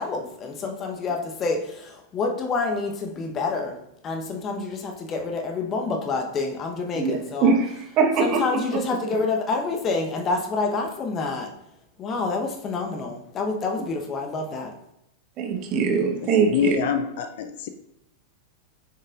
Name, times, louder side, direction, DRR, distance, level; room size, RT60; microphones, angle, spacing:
voice 1, 0.0-7.5 8.2-11.6 12.0-14.8, left 3 dB, 30° left, 1.1 m, -28 dB
voice 2, 6.9-7.7 8.0-8.4 15.4-16.8, right 5 dB, 35° right, 1.2 m, -22 dB
voice 3, 16.4-17.7, left 7 dB, 55° left, 0.5 m, -25 dB
8.3 x 6.5 x 2.5 m
figure-of-eight pair, 90°, 0 cm